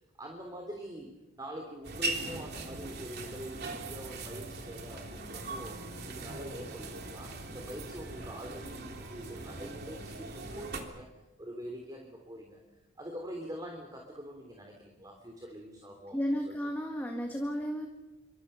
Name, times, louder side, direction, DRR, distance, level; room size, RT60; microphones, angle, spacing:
voice 1, 0.2-5.8 6.0-11.1 11.4-12.6 13.0-16.2 16.5-16.6, equal, 20° right, 2 dB, 3.3 m, -44 dB
sound 1, 1.8-10.8, right 2 dB, 55° right, 3.3 m, -40 dB
voice 2, 16.1-17.9, equal, 10° left, 1 dB, 1.9 m, -33 dB
27.5 x 25.0 x 5.7 m, 1.1 s
head